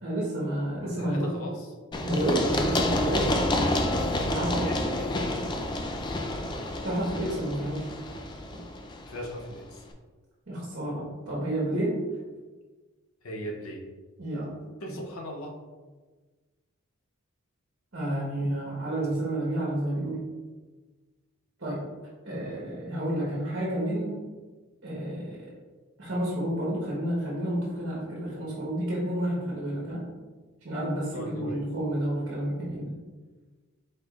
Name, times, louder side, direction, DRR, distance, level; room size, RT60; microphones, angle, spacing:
voice 1, 0.0-1.3 2.0-3.4 4.0-4.8 6.8-7.9 10.5-12.0 14.2-14.5 17.9-20.2 21.6-21.8 22.2-24.2 24.8-25.5 26.0-30.0 30.6-32.9, right 1 dB, 55° right, -6 dB, 1.3 m, -30 dB
voice 2, 0.8-1.7 4.6-5.4 9.0-9.8 13.2-13.8 14.8-15.5 19.0-19.1 31.1-31.6, equal, 75° left, 1 dB, 0.8 m, -39 dB
Run, 1.9-9.6, left 1 dB, 20° left, 0.3 m, -29 dB
4.9 x 4.3 x 2.5 m, 1.3 s
head